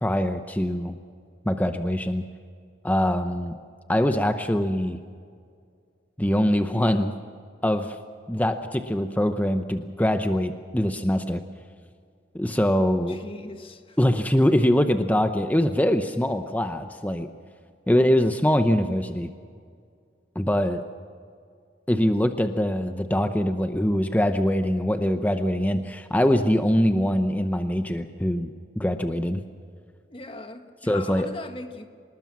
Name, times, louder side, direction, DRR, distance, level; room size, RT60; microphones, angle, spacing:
voice 1, 0.0-1.0 1.5-2.2 2.8-3.5 3.9-5.0 6.2-7.1 7.6-8.0 8.3-11.4 12.3-13.2 14.0-17.3 17.9-19.3 20.4-20.8 21.9-29.4 30.9-31.3, equal, 10° left, 8 dB, 0.7 m, -23 dB
voice 2, 13.1-14.0 30.1-31.9, left 2 dB, 30° left, 7 dB, 1.5 m, -39 dB
25.5 x 20.0 x 6.1 m, 2.2 s
head